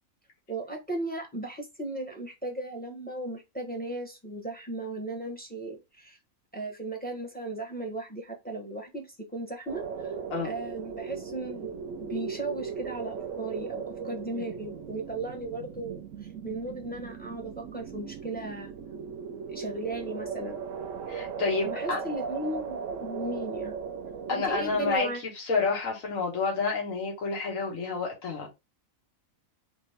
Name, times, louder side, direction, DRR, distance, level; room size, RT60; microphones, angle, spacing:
voice 1, 0.5-6.2 6.5-9.1 9.3-10.1 10.4-16.0 16.4-18.7 19.5-20.6 21.6-23.7 24.3-25.2, right 2 dB, 10° left, 0.8 m, -36 dB
sound 1, 9.7-25.0, right 6 dB, 70° right, 0.9 m, -38 dB
voice 2, 21.1-22.0 24.3-25.1 25.4-28.5, left 4 dB, 70° left, 1.7 m, -29 dB
3.4 x 3.2 x 3.3 m
omnidirectional pair, 1.4 m